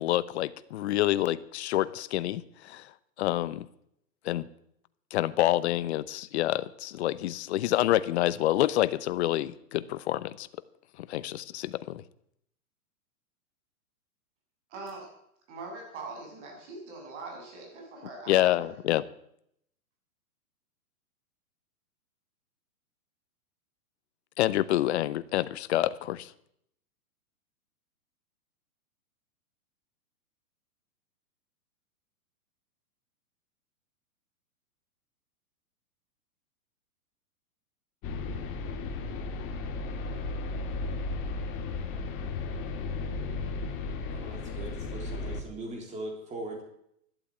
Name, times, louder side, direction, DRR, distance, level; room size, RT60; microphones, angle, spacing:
voice 1, 0.0-2.9 3.2-3.7 4.2-4.5 5.1-10.5 11.0-12.0 18.3-19.0 24.4-26.3, left 14 dB, 45° left, 15 dB, 0.8 m, -27 dB
voice 2, 14.7-15.1 15.5-18.8, right 3 dB, 50° right, 1 dB, 7.7 m, -42 dB
sound 1, 38.0-45.4, left 3 dB, 25° left, 1.8 m, -34 dB
voice 3, 44.1-46.6, right 2 dB, 15° right, 2 dB, 3.5 m, -40 dB
12.0 x 12.0 x 8.6 m, 0.73 s
hypercardioid pair, 155°, 45 cm